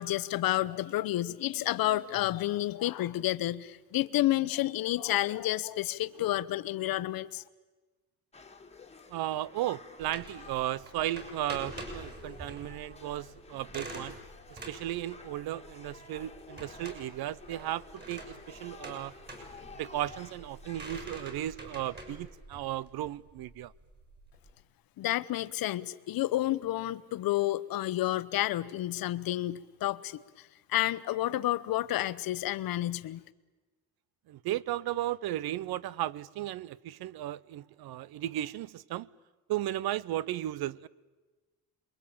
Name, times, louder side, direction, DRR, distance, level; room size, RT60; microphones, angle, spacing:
voice 1, 0.0-7.4 25.0-30.2 30.7-33.2, left 15 dB, 60° left, 1.0 m, -30 dB
sound 1, 8.3-21.1, left 4 dB, 15° left, 2.0 m, -52 dB
voice 2, 9.1-14.2 14.5-19.1 19.8-23.7 34.3-39.1 39.5-40.9, right 14 dB, 70° right, 0.9 m, -35 dB
sound 2, 10.0-24.5, right 1 dB, 25° right, 7.2 m, -46 dB
28.0 x 22.5 x 8.8 m
cardioid pair, 130°, 39 cm